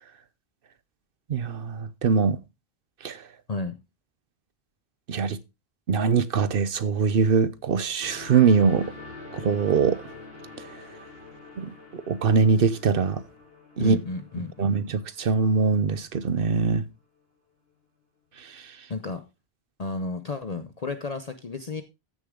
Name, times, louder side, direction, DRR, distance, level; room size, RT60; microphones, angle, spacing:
voice 1, 1.3-2.4 3.0-3.2 5.1-5.4 5.9-8.9 9.3-10.0 11.6-11.7 12.1-13.2 13.8-14.0 14.6-16.8, right 5 dB, 60° right, 0.9 m, -22 dB
sound 1, 8.0-15.8 16.6-16.7, left 3 dB, 65° left, 3.6 m, -45 dB
voice 2, 13.8-14.8 18.9-19.2 19.8-21.8, left 3 dB, 40° left, 0.8 m, -32 dB
14.0 x 6.7 x 3.7 m
omnidirectional pair, 1.1 m